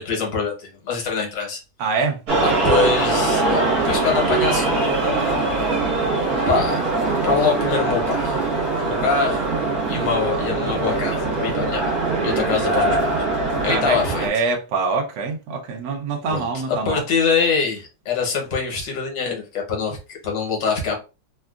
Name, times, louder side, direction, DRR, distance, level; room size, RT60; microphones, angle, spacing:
voice 1, 0.0-1.6 2.4-5.5 6.5-6.8 7.2-8.4 8.8-9.4 9.9-11.8 12.2-13.3 13.6-14.2 16.3-21.0, left 5 dB, 70° left, 1.7 m, -24 dB
voice 2, 1.8-2.2 13.7-17.0, right 4 dB, 75° right, 1.3 m, -25 dB
sound 1, 2.3-14.3, right 3 dB, 55° right, 1.7 m, -22 dB
3.7 x 2.3 x 2.3 m
omnidirectional pair, 2.0 m